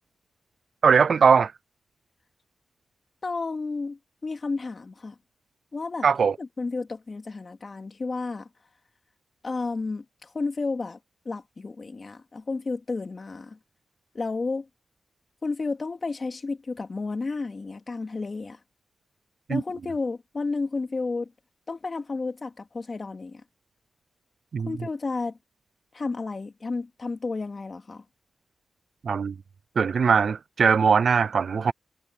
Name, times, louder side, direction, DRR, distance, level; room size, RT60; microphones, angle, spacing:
voice 1, 0.8-1.5 6.0-6.3 19.5-19.6 24.5-24.7 29.0-29.3 29.8-31.7, right 6 dB, 70° right, 0.3 m, -20 dB
voice 2, 3.2-5.1 5.7-6.1 6.4-8.5 9.4-11.0 11.2-13.6 14.1-14.7 15.4-18.6 19.5-21.3 21.7-23.4 24.7-25.4 25.9-28.0, left 3 dB, 45° left, 2.5 m, -32 dB
wide cardioid pair, 90°, 0 cm